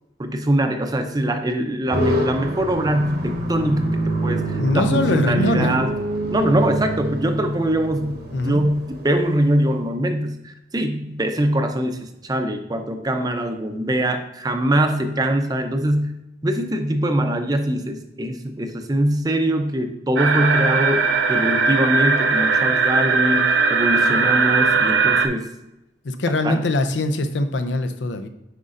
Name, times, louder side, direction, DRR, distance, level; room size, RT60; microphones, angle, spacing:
voice 1, 0.2-5.9 6.3-8.2 8.4-25.5 26.4-26.7, right 1 dB, 20° right, 6 dB, 0.5 m, -23 dB
sound 1, 1.9-9.6, right 1 dB, 55° right, 1.0 m, -26 dB
voice 2, 4.6-5.8 8.3-8.7 26.0-28.3, left 2 dB, 85° left, 8 dB, 0.6 m, -22 dB
sound 2, 20.2-25.3, right 4 dB, 85° right, 0.6 m, -19 dB
8.0 x 5.2 x 2.5 m, 0.88 s
head